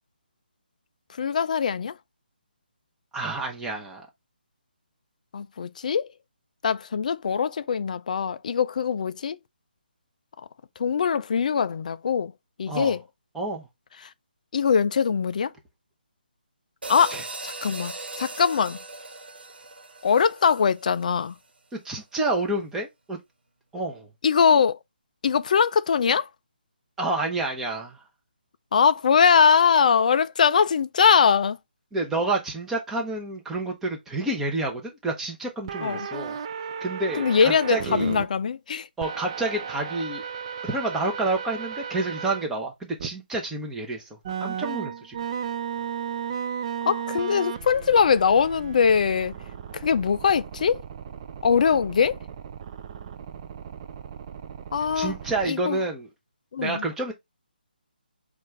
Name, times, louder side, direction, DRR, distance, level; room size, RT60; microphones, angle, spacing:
voice 1, 1.2-2.0 5.3-6.1 6.6-9.4 10.8-12.3 12.6-13.0 14.5-15.5 16.9-18.8 20.0-21.4 24.2-24.8 25.2-26.3 28.7-31.6 35.8-36.1 37.2-38.9 46.8-49.3 49.8-50.8 51.4-52.2 54.7-55.1 55.5-55.8 56.5-56.8, left 6 dB, 50° left, 0.3 m, -22 dB
voice 2, 3.1-4.0 12.7-12.9 13.3-13.7 17.1-17.2 21.8-23.2 23.7-24.1 27.0-28.0 31.9-36.4 36.8-38.1 39.0-40.2 40.6-45.2 54.9-56.1 56.6-57.1, right 2 dB, 5° right, 0.8 m, -29 dB
sound 1, 16.8-21.2, right 3 dB, 80° right, 0.8 m, -39 dB
sound 2, 35.7-38.2 39.0-42.4 43.0-43.1 44.2-55.5, right 7 dB, 35° right, 0.4 m, -35 dB
4.3 x 2.5 x 3.1 m
figure-of-eight pair, 150°, 5 cm